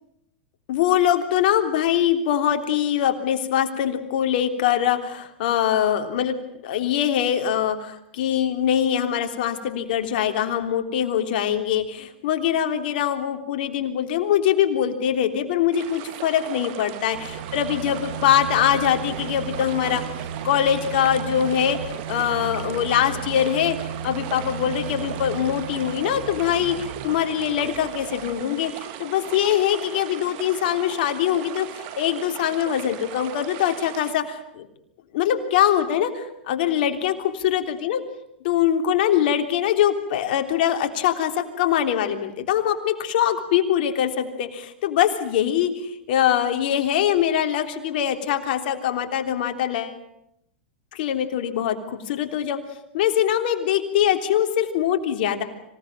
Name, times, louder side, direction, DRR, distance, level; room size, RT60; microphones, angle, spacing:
voice 1, 0.7-6.4 6.6-20.0 20.4-23.8 24.0-34.7 35.1-38.0 38.4-50.0 50.9-52.6 52.9-55.4, left 10 dB, 65° left, 6 dB, 3.4 m, -23 dB
sound 1, 15.7-34.1, right 11 dB, 55° right, 2.7 m, -38 dB
sound 2, 17.1-28.4, right 8 dB, 70° right, 2.0 m, -35 dB
26.0 x 18.0 x 9.0 m, 0.79 s
hypercardioid pair, 120°, 6 cm